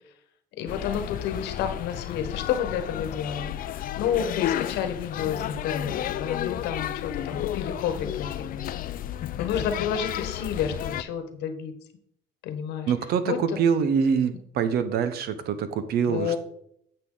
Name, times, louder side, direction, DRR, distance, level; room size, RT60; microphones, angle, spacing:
voice 1, 0.6-8.7 9.4-11.7 12.4-12.9 13.2-13.6 16.1-16.4, left 8 dB, 85° left, 8 dB, 1.3 m, -30 dB
sound 1, 0.7-11.0, left 11 dB, 55° left, 0.5 m, -32 dB
voice 2, 12.9-16.4, right 6 dB, 70° right, 12 dB, 0.9 m, -25 dB
9.5 x 6.9 x 3.9 m, 0.71 s
cardioid pair, 110°, 17 cm